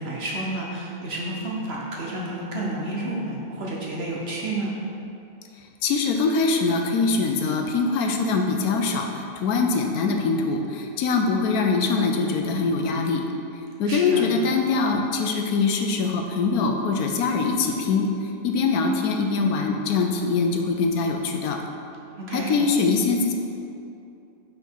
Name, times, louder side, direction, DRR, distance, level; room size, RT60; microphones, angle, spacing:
voice 1, 0.0-4.7 13.9-14.3 22.2-22.6, right 2 dB, 50° right, -4 dB, 1.0 m, -30 dB
voice 2, 5.8-13.3 13.8-18.1 18.4-21.6 22.3-23.3, left 4 dB, 75° left, 3 dB, 1.1 m, -23 dB
5.7 x 5.2 x 4.5 m, 2.7 s
omnidirectional pair, 1.6 m